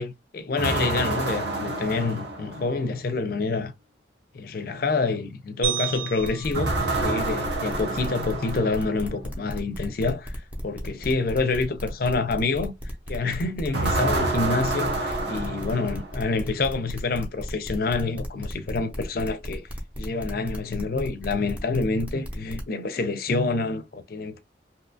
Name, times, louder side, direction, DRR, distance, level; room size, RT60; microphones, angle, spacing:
voice 1, 0.0-3.7 4.3-12.7 13.1-19.7 20.0-24.4, left 3 dB, 55° left, 0.4 m, -27 dB
sound 1, 0.6-2.9 6.5-9.1 13.7-16.3, right 2 dB, 80° right, 0.7 m, -28 dB
sound 2, 5.6-8.0, right 11 dB, 50° right, 0.4 m, -33 dB
sound 3, 6.2-22.6, equal, 10° right, 0.6 m, -36 dB
2.7 x 2.3 x 2.5 m
head